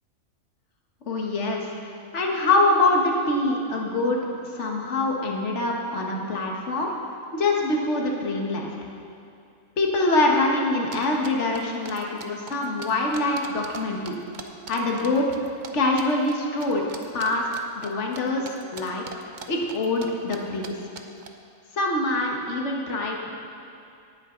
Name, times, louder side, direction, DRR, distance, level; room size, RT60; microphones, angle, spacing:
voice 1, 1.1-6.9 7.3-8.7 9.8-14.2 14.7-15.3 15.7-16.9 17.1-17.4 17.7-18.4 18.7-19.0 19.5-20.8 21.7-23.3, left 2 dB, 55° left, 0 dB, 1.7 m, -24 dB
sound 1, 10.9-13.8 14.0-15.7 16.0-16.3 16.6-18.2 18.5-20.1 20.3-20.4 20.6-20.7 20.9-21.3, right 5 dB, 45° right, 0.7 m, -40 dB
18.0 x 9.4 x 3.9 m, 2.5 s
omnidirectional pair, 1.4 m